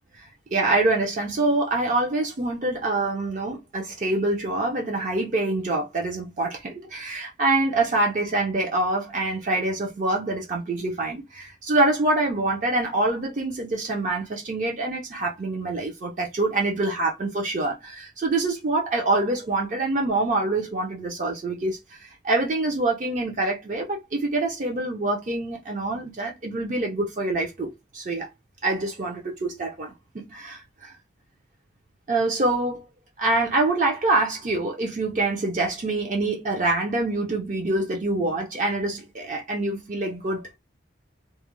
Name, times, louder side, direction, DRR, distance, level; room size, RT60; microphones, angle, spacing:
voice 1, 0.1-28.3 28.6-31.0 32.1-32.8 33.2-40.6, right 2 dB, 40° right, 0.5 m, -25 dB
2.3 x 2.1 x 2.9 m
head